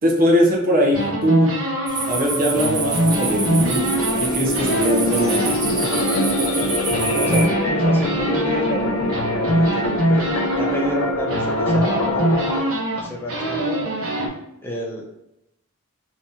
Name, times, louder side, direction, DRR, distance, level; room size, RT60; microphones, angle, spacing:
voice 1, 0.0-1.5 2.1-3.8 4.2-5.5, equal, 40° right, -2 dB, 0.9 m, -20 dB
sound 1, 0.9-4.3 4.6-14.3, right 1 dB, 75° right, 1.1 m, -23 dB
sound 2, 1.9-7.5, right 4 dB, 20° right, 0.3 m, -28 dB
sound 3, 3.0-12.6, left 2 dB, 75° left, 0.6 m, -25 dB
voice 2, 7.1-14.1 14.6-15.2, equal, 10° left, -3 dB, 0.8 m, -30 dB
2.9 x 2.7 x 3.6 m, 0.82 s
head